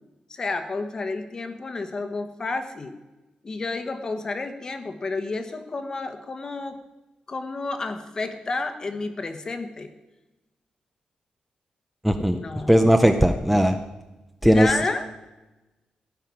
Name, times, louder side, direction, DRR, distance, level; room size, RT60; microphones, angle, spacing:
voice 1, 0.3-3.0 3.4-6.8 7.3-9.9 12.4-12.7 14.4-15.1, left 3 dB, 30° left, 8 dB, 1.1 m, -30 dB
voice 2, 12.0-12.4 12.7-13.8 14.4-14.7, equal, 5° right, 6 dB, 0.6 m, -18 dB
16.0 x 5.7 x 9.6 m, 1.1 s
wide cardioid pair, 175°, 2 cm